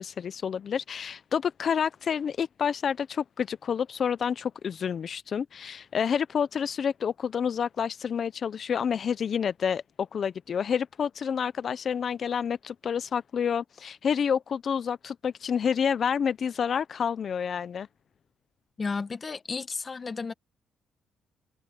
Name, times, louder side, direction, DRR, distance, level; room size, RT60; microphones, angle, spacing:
voice 1, 0.0-17.9, left 7 dB, 55° left, 0.6 m, -29 dB
voice 2, 18.8-20.3, left 4 dB, 35° left, 1.6 m, -33 dB
cardioid pair, 90°, 0 cm